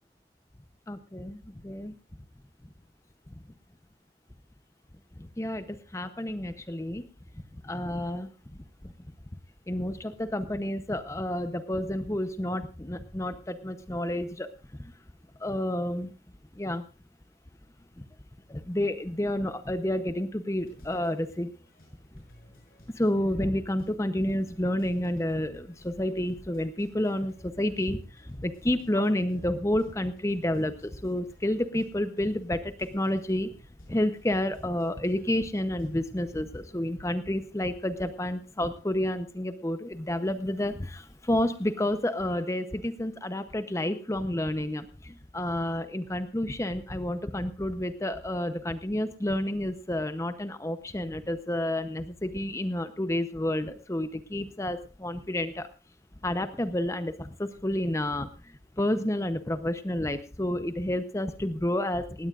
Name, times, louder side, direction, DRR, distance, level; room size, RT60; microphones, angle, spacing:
voice 1, 0.9-1.9 5.2-7.1 7.6-8.3 9.7-14.5 15.4-16.1 16.5-16.9 18.0-18.1 18.5-21.5 22.9-33.5 33.9-55.7 56.2-58.3 58.8-62.3, left 1 dB, 15° left, 11 dB, 0.8 m, -30 dB
sound 1, 20.6-36.4, equal, 55° left, 6.4 m, -56 dB
19.0 x 17.0 x 2.5 m, 0.32 s
head